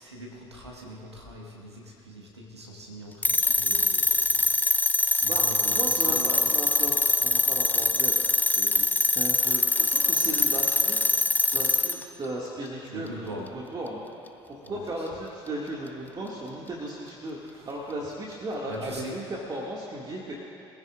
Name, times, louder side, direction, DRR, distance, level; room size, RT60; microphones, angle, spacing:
voice 1, 0.0-6.3 12.9-13.5 14.6-15.1 17.5-17.7 18.7-19.2, right 1 dB, 90° right, -1 dB, 1.6 m, -42 dB
sound 1, 3.2-12.0, left 3 dB, 10° left, 0.7 m, -23 dB
voice 2, 5.3-11.0 11.4-14.0 14.5-20.3, right 1 dB, 30° right, -4 dB, 2.2 m, -36 dB
25.0 x 15.5 x 2.5 m, 2.7 s
figure-of-eight pair, 55°, 14 cm